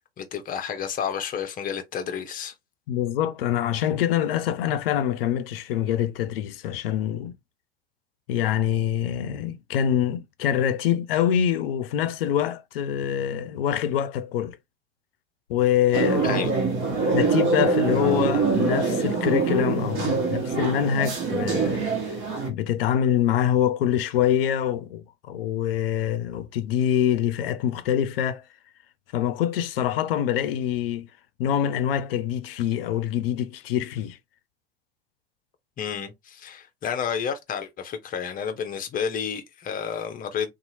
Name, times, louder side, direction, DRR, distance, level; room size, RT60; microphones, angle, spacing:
voice 1, 0.2-2.5 16.2-16.6 35.8-40.5, left 7 dB, 25° left, 0.7 m, -31 dB
voice 2, 2.9-7.3 8.3-14.6 15.5-16.5 17.1-21.8 22.5-28.4 29.1-31.1 31.4-34.2, left 10 dB, 65° left, 0.5 m, -25 dB
sound 1, 15.9-22.5, right 4 dB, 40° right, 1.2 m, -24 dB
2.8 x 2.4 x 2.6 m
figure-of-eight pair, 80°, 31 cm